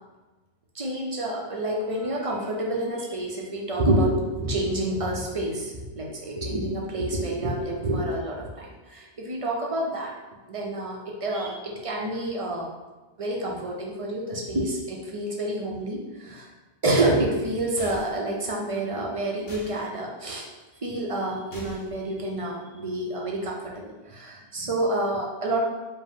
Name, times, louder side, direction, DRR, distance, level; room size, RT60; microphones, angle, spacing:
voice 1, 0.7-10.1 10.5-12.7 13.2-16.5 16.8-20.5 20.8-25.6, right 1 dB, 40° right, -2 dB, 0.5 m, -28 dB
sound 1, 17.8-18.3 19.5-19.8 21.5-22.0, left 1 dB, 55° left, 1.1 m, -42 dB
4.9 x 2.1 x 3.5 m, 1.2 s
omnidirectional pair, 1.2 m